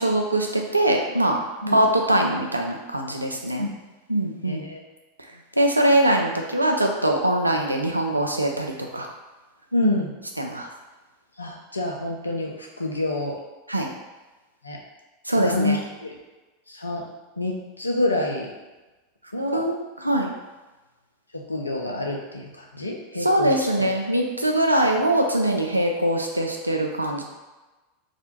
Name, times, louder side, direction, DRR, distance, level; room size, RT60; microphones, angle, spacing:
voice 1, 0.0-1.4 1.7-3.6 4.1-4.6 5.6-9.1 10.4-10.7 13.7-13.9 15.3-15.8 19.5-19.8 20.0-20.3 23.2-27.2, right 1 dB, 85° right, 2 dB, 0.3 m, -22 dB
voice 2, 4.4-4.8 9.7-10.2 11.4-13.4 14.6-14.8 15.4-16.2 16.7-17.1 17.4-18.5 19.3-19.7 21.3-23.9, left 1 dB, 85° left, 0 dB, 0.4 m, -27 dB
2.4 x 2.1 x 2.9 m, 1.1 s
figure-of-eight pair, 85°, 0 cm